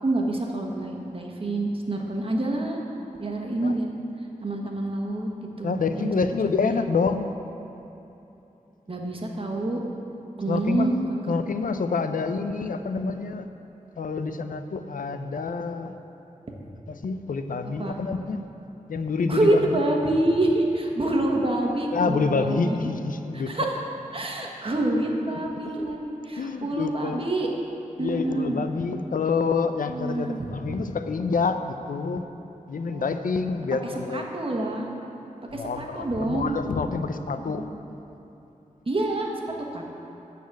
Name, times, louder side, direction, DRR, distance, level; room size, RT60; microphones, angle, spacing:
voice 1, 0.0-2.8 3.2-3.9 4.4-5.3 5.6-6.1 6.6-6.8 8.9-9.8 10.4-11.3 17.6-18.0 19.3-22.8 23.3-23.8 24.1-27.5 28.0-28.6 29.9-30.5 32.9-33.1 33.8-34.9 35.5-36.6 37.4-37.5 38.9-39.4 39.7-39.8, right 1 dB, 40° right, 0 dB, 1.3 m, -27 dB
voice 2, 5.6-7.3 10.5-10.9 11.3-13.4 14.0-15.9 16.9-18.4 18.9-19.8 21.9-23.5 25.6-25.7 26.4-27.2 28.0-32.2 32.7-34.2 35.5-37.7, left 4 dB, 85° left, 9 dB, 0.5 m, -27 dB
12.5 x 4.2 x 8.3 m, 2.9 s
wide cardioid pair, 85°, 14 cm